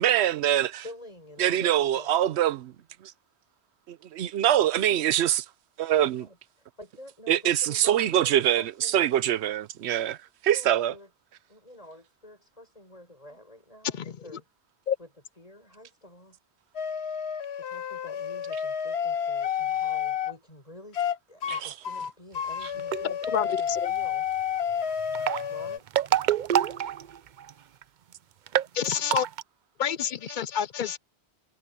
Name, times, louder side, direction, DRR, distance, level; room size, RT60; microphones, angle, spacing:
voice 1, 0.0-0.8 1.4-2.7 3.0-3.1 3.9-5.4 5.8-6.3 7.3-10.2 10.4-10.9 21.5-21.7, right 11 dB, 85° right, 0.9 m, -24 dB
voice 2, 0.8-2.1 6.0-9.1 10.5-11.1 11.5-14.4 15.0-15.1 15.4-16.4 17.6-21.0 21.3-24.3 25.5-25.9 28.8-29.2, left 1 dB, 35° left, 7.3 m, -48 dB
sound 1, 16.7-20.3 20.9-21.2 21.4-21.6 21.8-25.8, left 8 dB, 75° left, 1.2 m, -30 dB
sound 2, 22.8-23.2 25.0-27.5 27.8-27.9 28.1-28.2 28.5-29.4, right 10 dB, 55° right, 0.6 m, -26 dB
voice 3, 23.0-23.9 28.7-29.3 29.8-31.0, left 8 dB, 55° left, 0.6 m, -29 dB
omnidirectional pair, 1.1 m